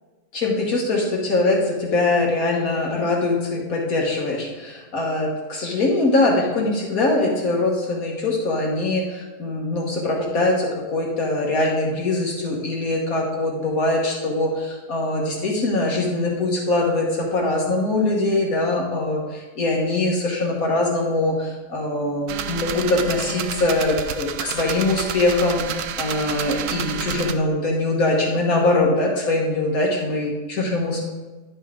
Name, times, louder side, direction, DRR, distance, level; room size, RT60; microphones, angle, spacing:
voice 1, 0.3-31.1, left 2 dB, 60° left, -2 dB, 1.7 m, -22 dB
sound 1, 22.3-27.3, right 8 dB, 70° right, 0.8 m, -30 dB
10.5 x 5.2 x 3.7 m, 1.2 s
omnidirectional pair, 1.7 m